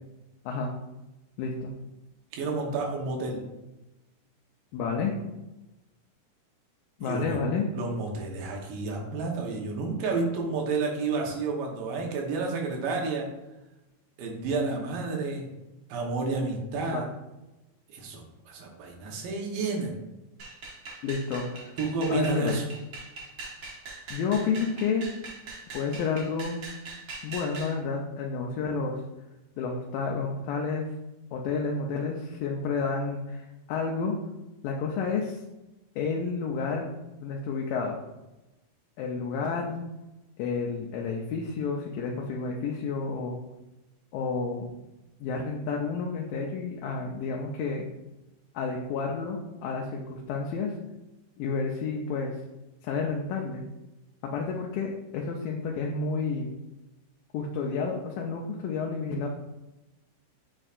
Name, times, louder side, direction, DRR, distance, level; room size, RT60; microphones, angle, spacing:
voice 1, 1.4-1.7 4.7-5.1 7.0-7.7 16.9-17.1 21.0-21.8 22.1-22.6 24.1-25.1 25.7-26.6 27.2-29.0 29.6-30.9 31.3-34.2 34.6-35.4 36.0-36.9 37.2-38.0 39.0-39.8 40.4-43.4 44.1-44.7 45.2-47.9 48.5-50.8 51.4-52.4 52.8-53.6 54.2-56.5 57.3-59.3, left 5 dB, 85° left, 0 dB, 2.4 m, -30 dB
voice 2, 2.3-3.4 7.0-7.4 7.7-13.3 14.2-15.5 15.9-17.1 17.9-18.2 18.5-19.9 21.8-22.7, right 3 dB, 80° right, 0 dB, 2.7 m, -30 dB
sound 1, 20.4-27.7, right 3 dB, 65° right, 1.1 m, -42 dB
8.8 x 4.4 x 2.4 m, 0.99 s
omnidirectional pair, 3.9 m